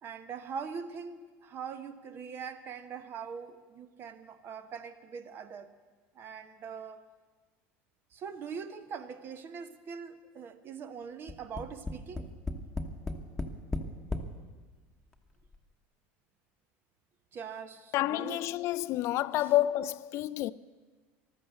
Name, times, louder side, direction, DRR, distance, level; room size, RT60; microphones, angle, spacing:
voice 1, 0.0-5.7 6.1-7.0 8.1-12.3 17.3-18.5 19.4-19.5, right 6 dB, 40° right, 1.2 m, -42 dB
Tap, 11.3-14.3 15.1-15.2 15.5-15.6, left 2 dB, 10° left, 1.3 m, -35 dB
voice 2, 17.9-20.5, left 14 dB, 55° left, 0.4 m, -29 dB
14.0 x 12.5 x 8.3 m
supercardioid pair, 120°, 6 cm